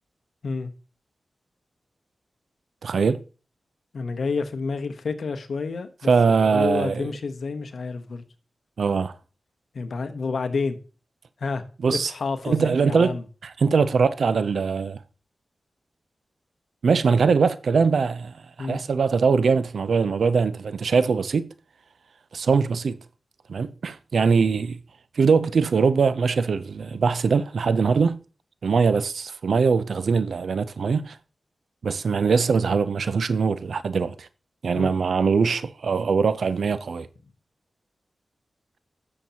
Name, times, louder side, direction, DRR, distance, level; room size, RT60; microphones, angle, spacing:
voice 1, 2.8-3.2 6.1-7.1 8.8-9.2 11.8-12.1 12.4-15.0 16.8-21.5 22.3-23.0 23.5-24.8 25.2-28.2 28.6-31.2 31.8-34.3 34.6-37.1, right 5 dB, 80° right, 0.5 m, -22 dB
voice 2, 3.9-6.1 6.4-8.2 9.7-10.8 11.4-11.6 12.1-13.2 18.6-18.8 34.7-35.0, left 4 dB, 75° left, 1.0 m, -29 dB
11.0 x 7.2 x 2.9 m
cardioid pair, 50°, 0 cm